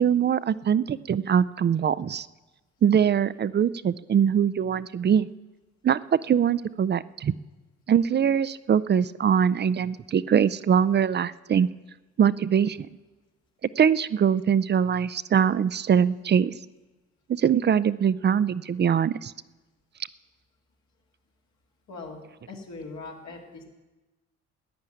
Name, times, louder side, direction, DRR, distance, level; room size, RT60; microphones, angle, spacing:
voice 1, 0.0-2.3 2.8-5.3 5.8-7.3 7.9-11.7 12.2-12.9 13.8-16.5 17.3-19.3, right 8 dB, 35° right, 18 dB, 0.5 m, -22 dB
voice 2, 21.9-22.2 22.5-23.6, left 3 dB, 65° left, -1 dB, 2.5 m, -40 dB
11.5 x 9.7 x 9.1 m, 1.1 s
cardioid pair, 90°, 30 cm